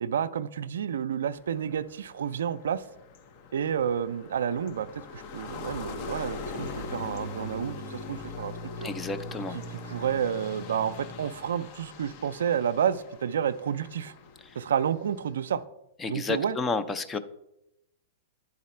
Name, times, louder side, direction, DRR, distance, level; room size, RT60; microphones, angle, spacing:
voice 1, 0.0-2.8 3.5-4.9 5.1-8.5 8.8-8.9 9.5-14.1 14.6-15.6 16.1-16.6, right 8 dB, 80° right, 13 dB, 0.3 m, -30 dB
sound 1, 1.3-15.6, left 3 dB, 50° left, 0.8 m, -41 dB
voice 2, 8.8-9.6 16.0-17.2, left 3 dB, 15° left, 10 dB, 0.5 m, -31 dB
9.4 x 3.9 x 4.2 m, 0.85 s
hypercardioid pair, 130°, 0 cm